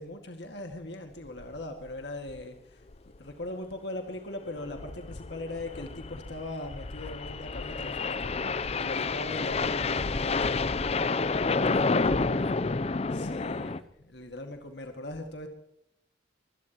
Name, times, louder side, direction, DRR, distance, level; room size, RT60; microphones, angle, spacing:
voice 1, 0.0-8.3 8.8-10.6 13.1-15.5, left 1 dB, 65° left, 2.1 m, -40 dB
sound 1, 1.4-1.6 1.9-2.0 2.3-2.4 2.9-3.2 4.5-13.8, left 4 dB, 35° left, 0.6 m, -29 dB
voice 2, 11.3-12.8 13.1-14.0, equal, ahead, 1.5 m, -48 dB
24.0 x 17.0 x 3.0 m
head